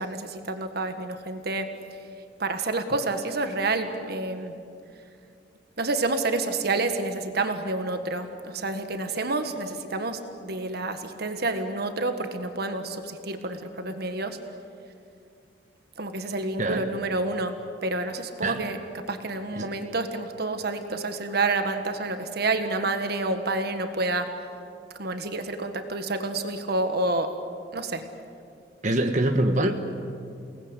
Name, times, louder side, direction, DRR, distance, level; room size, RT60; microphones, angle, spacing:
voice 1, 0.0-1.6 2.4-4.6 5.8-14.4 16.0-17.5 17.8-18.8 19.1-24.3 25.0-27.3 27.7-28.0, right 2 dB, 60° right, 7 dB, 1.6 m, -29 dB
voice 2, 28.8-29.7, right 1 dB, 45° right, 4 dB, 1.6 m, -24 dB
29.5 x 19.5 x 8.3 m, 2.5 s
head